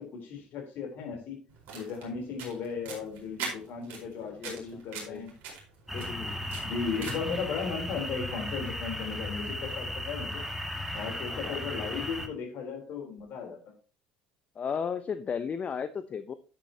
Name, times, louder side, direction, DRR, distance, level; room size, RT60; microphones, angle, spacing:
voice 1, 0.0-1.4 1.7-5.3 5.9-6.3 6.6-10.4 10.9-13.6, left 5 dB, 55° left, 3 dB, 3.8 m, -36 dB
sound 1, 1.5-7.4, right 5 dB, 55° right, 4.5 m, -43 dB
voice 2, 4.2-4.7 5.0-5.3 6.0-6.4 11.3-11.6 14.6-16.3, left 6 dB, 35° left, 12 dB, 0.7 m, -35 dB
sound 2, 5.9-12.3, left 1 dB, 5° right, 2.1 m, -36 dB
10.0 x 9.2 x 2.9 m, 0.36 s
figure-of-eight pair, 60°, 4 cm